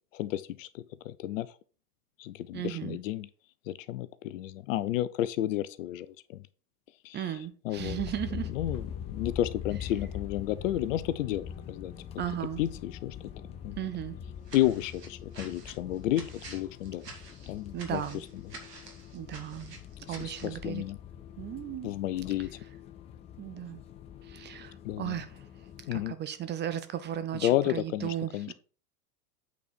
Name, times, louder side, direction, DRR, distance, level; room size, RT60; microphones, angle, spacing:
voice 1, 0.1-1.5 2.2-3.3 3.7-6.4 7.0-7.2 7.6-8.0 8.5-11.9 12.6-13.2 13.6-13.8 14.5-17.0 17.5-18.0 20.1-21.0 21.8-22.5 24.8-25.2 25.9-26.1 27.4-28.5, left 13 dB, 55° left, 0.7 m, -31 dB
voice 2, 2.5-3.0 7.1-8.5 12.2-12.6 13.8-14.2 17.7-18.2 19.1-19.8 20.1-20.8 21.4-21.9 23.4-23.8 24.2-25.3 25.9-28.5, right 10 dB, 25° right, 0.7 m, -36 dB
sound 1, 7.8-26.1, left 8 dB, 15° left, 0.4 m, -43 dB
sound 2, 14.5-20.6, right 3 dB, 85° right, 2.1 m, -49 dB
8.4 x 4.2 x 4.4 m
hypercardioid pair, 95°, 47 cm